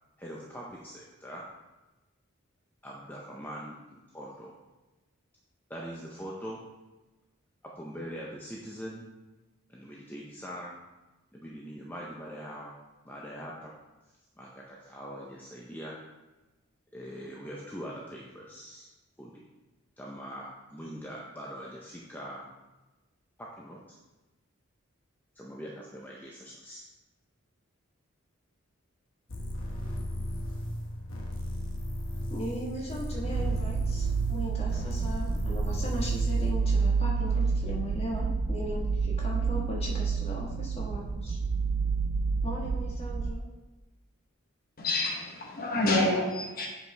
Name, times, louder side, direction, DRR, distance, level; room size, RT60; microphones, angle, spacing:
voice 1, 0.2-1.5 2.8-4.5 5.7-6.6 7.8-9.1 9.7-10.8 11.3-12.8 13.1-13.8 14.4-16.0 16.9-18.9 19.2-19.3 20.0-22.5 23.4-24.0 25.4-26.8, equal, 10° left, -4 dB, 0.5 m, -42 dB
sound 1, 29.3-36.6, equal, 70° left, 1.0 m, -36 dB
voice 2, 32.3-41.4 42.4-43.4, equal, 30° left, -3 dB, 1.3 m, -37 dB
sound 2, 33.2-43.3, right 5 dB, 55° right, 0.3 m, -29 dB
voice 3, 44.8-46.7, left 2 dB, 45° left, -1 dB, 1.0 m, -28 dB
7.8 x 4.9 x 3.3 m, 1.1 s
head